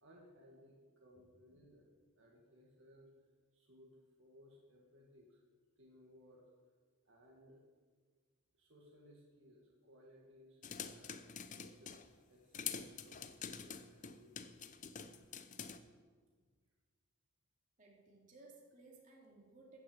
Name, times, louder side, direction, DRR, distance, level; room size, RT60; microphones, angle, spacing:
voice 1, 0.0-1.9 2.2-3.1 3.5-5.4 5.8-6.5 7.1-7.6 8.5-11.2 11.5-14.8, equal, 60° right, -2 dB, 1.9 m, -63 dB
sound 1, 10.6-12.1 12.5-15.8, left 7 dB, 35° left, 0.6 m, -46 dB
voice 2, 17.8-19.8, right 3 dB, 35° right, -2 dB, 2.6 m, -60 dB
14.0 x 6.5 x 7.8 m, 1.5 s
head